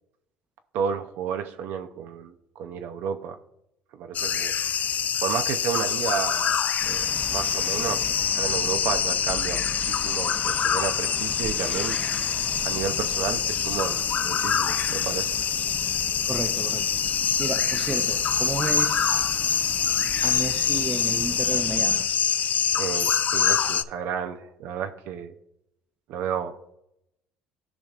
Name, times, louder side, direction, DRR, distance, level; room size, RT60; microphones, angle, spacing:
voice 1, 0.7-3.4 4.0-4.5 5.2-7.0 7.3-8.1 8.3-12.0 12.6-15.3 22.8-25.3 26.1-26.5, right 8 dB, 70° right, 7 dB, 0.6 m, -31 dB
sound 1, 4.1-23.8, left 8 dB, 45° left, 0.4 m, -25 dB
sound 2, 6.8-22.0, equal, 10° left, 0.9 m, -40 dB
voice 2, 16.3-16.9 17.4-19.3 20.2-22.1, right 3 dB, 25° right, 5 dB, 0.7 m, -32 dB
13.5 x 5.2 x 2.4 m, 0.82 s
supercardioid pair, 75°, 4 cm